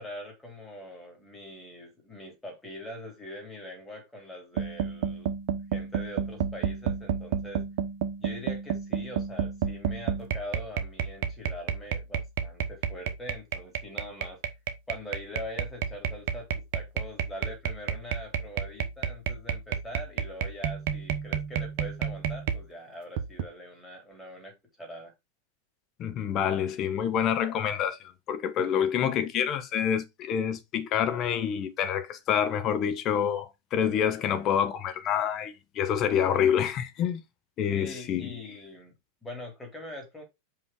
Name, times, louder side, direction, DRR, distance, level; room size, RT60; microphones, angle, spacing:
voice 1, 0.0-5.3 5.7-7.6 8.2-14.4 14.9-25.1 28.5-28.7 37.7-38.9 39.2-40.2, left 1 dB, 5° left, 3.5 m, -43 dB
sound 1, 4.6-22.6 23.2-23.4, right 8 dB, 50° right, 1.0 m, -31 dB
voice 2, 26.0-37.2 37.6-38.4, left 8 dB, 35° left, 1.1 m, -27 dB
5.4 x 5.0 x 4.7 m
figure-of-eight pair, 90°, 0 cm